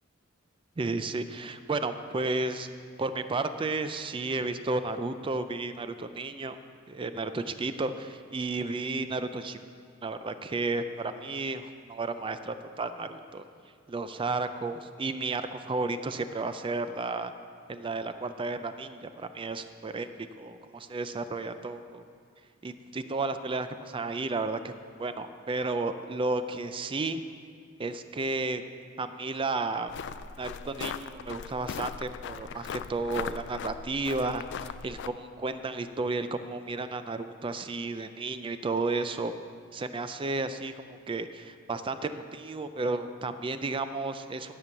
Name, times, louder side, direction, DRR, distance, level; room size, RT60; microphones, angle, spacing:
voice 1, 0.8-2.7 3.0-6.6 6.9-9.6 10.0-13.4 13.9-17.3 17.7-22.0 22.6-24.7 25.0-27.2 27.8-28.6 29.0-29.9 30.4-39.3 39.7-44.5, right 3 dB, 25° right, 10 dB, 0.4 m, -33 dB
sound 1, 29.9-35.1, left 7 dB, 60° left, 0.3 m, -39 dB
12.5 x 5.3 x 7.0 m, 2.3 s
head